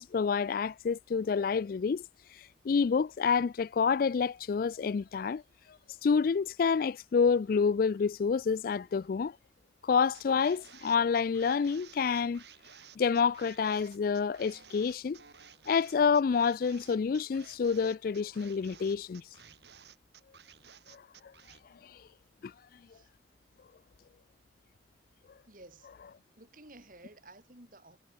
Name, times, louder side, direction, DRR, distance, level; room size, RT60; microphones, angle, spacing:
voice 1, 0.0-2.0 2.6-5.4 6.0-9.4 9.8-12.4 13.0-15.2 15.7-19.2 20.9-21.0 21.9-22.0 22.4-22.5, left 5 dB, 55° left, 0.3 m, -28 dB
sound 1, 10.1-21.6, right 7 dB, 70° right, 4.0 m, -55 dB
voice 2, 25.4-25.9 26.4-28.0, right 2 dB, 50° right, 5.3 m, -54 dB
head